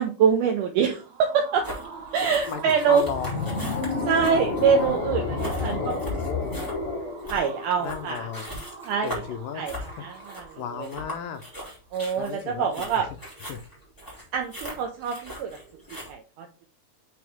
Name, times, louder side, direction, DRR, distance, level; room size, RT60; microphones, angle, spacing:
voice 1, 0.0-1.7 2.1-3.0 4.1-5.9 7.3-8.3 8.9-9.1 9.6-10.9 11.9-13.1 14.3-15.6 16.1-16.7, right 6 dB, 80° right, 3 dB, 1.8 m, -25 dB
sound 1, 0.9-11.8, right 5 dB, 65° right, 2.0 m, -44 dB
sound 2, 1.6-16.1, equal, 5° left, 1.8 m, -40 dB
voice 2, 2.5-3.6 5.6-6.5 7.8-8.6 9.0-11.4 12.2-13.2 13.5-13.6, left 7 dB, 80° left, 7 dB, 2.0 m, -36 dB
sound 3, 3.0-8.2, left 3 dB, 60° left, 2.9 m, -30 dB
8.1 x 4.3 x 3.5 m, 0.35 s
omnidirectional pair, 4.5 m